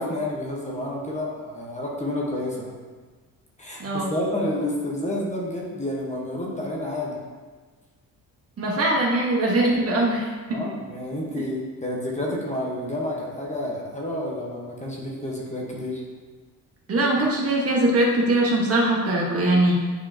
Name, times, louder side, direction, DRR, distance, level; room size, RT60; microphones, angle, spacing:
voice 1, 0.0-2.7 3.6-7.2 10.5-16.0, left 1 dB, 20° left, -3 dB, 1.1 m, -29 dB
voice 2, 3.8-4.1 8.6-10.6 16.9-19.7, right 1 dB, 40° right, -3 dB, 1.3 m, -21 dB
9.0 x 4.7 x 2.8 m, 1.4 s
cardioid pair, 125°, 35 cm